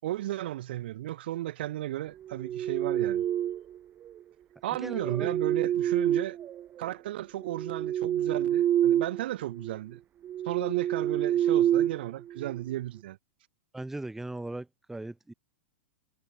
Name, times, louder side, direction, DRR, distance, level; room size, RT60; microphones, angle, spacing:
voice 1, 0.0-3.3 4.6-6.4 6.8-10.0 10.4-13.2, right 14 dB, 60° right, 7.1 m, -34 dB
sound 1, 2.3-3.8 4.8-6.9 7.3-9.2 9.5-9.7 10.2-12.6, right 11 dB, 25° right, 0.8 m, -28 dB
voice 2, 4.8-5.3 13.7-15.3, right 2 dB, 5° right, 4.4 m, -38 dB
figure-of-eight pair, 105°, 6 cm